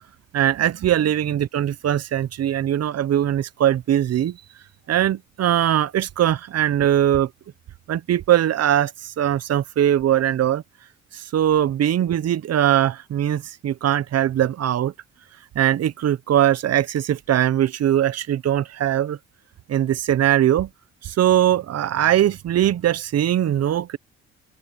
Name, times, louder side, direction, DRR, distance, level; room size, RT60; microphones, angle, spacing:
voice 1, 0.3-4.4 4.9-7.3 7.9-10.6 11.1-14.9 15.5-19.2 19.7-20.7 21.0-24.0, right 11 dB, 55° right, 0.8 m, -21 dB
open air
cardioid pair, 90°, 30 cm